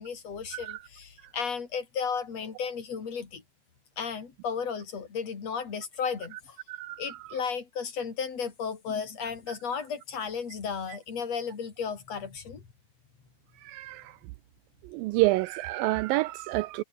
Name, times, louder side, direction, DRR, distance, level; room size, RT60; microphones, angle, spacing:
voice 1, 0.0-3.4 4.0-6.6 7.0-12.7, left 6 dB, 45° left, 4.5 m, -34 dB
voice 2, 6.7-7.2 13.6-14.2 14.9-16.8, right 19 dB, 80° right, 2.3 m, -28 dB
omnidirectional pair, 4.2 m